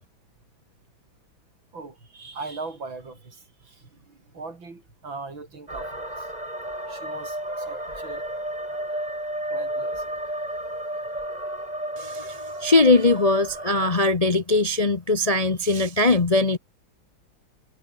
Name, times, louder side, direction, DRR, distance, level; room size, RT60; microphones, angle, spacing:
voice 1, 1.7-6.3 6.9-8.3 8.6-8.9 9.5-10.2 10.5-11.0, right 3 dB, 80° right, 5.3 m, -40 dB
sound 1, 5.7-14.0, right 1 dB, 20° right, 7.0 m, -32 dB
voice 2, 12.0-16.6, left 2 dB, 30° left, 0.6 m, -20 dB
omnidirectional pair, 2.1 m